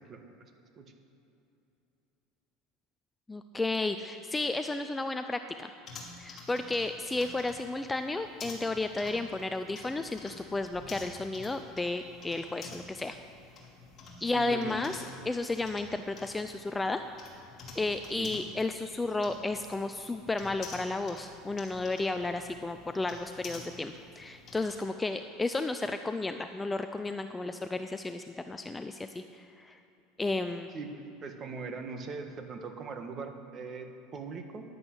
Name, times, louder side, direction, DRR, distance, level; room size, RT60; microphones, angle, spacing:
voice 1, 3.3-5.7 6.2-13.2 14.2-17.0 17.7-29.8 30.2-30.7, left 2 dB, 10° left, 8 dB, 0.4 m, -33 dB
sound 1, 5.8-24.8, left 3 dB, 25° left, 2.6 m, -50 dB
voice 2, 14.2-15.3 18.2-18.3 30.7-34.6, right 4 dB, 30° right, 5 dB, 1.4 m, -41 dB
11.5 x 11.0 x 7.9 m, 2.8 s
supercardioid pair, 155°, 0 cm